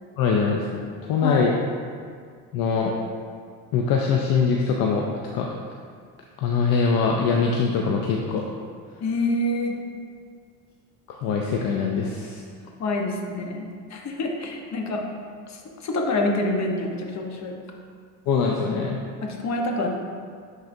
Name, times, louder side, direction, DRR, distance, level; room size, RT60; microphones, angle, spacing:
voice 1, 0.2-0.8 1.1-1.6 2.5-2.9 3.7-5.1 5.3-5.5 6.4-8.4 11.1-12.4 18.3-19.0, left 5 dB, 60° left, 0 dB, 0.7 m, -22 dB
voice 2, 9.0-9.8 12.8-15.0 15.5-17.5 19.2-19.9, left 2 dB, 45° left, 1 dB, 1.1 m, -27 dB
10.5 x 4.0 x 2.7 m, 2.1 s
supercardioid pair, 85°, 39 cm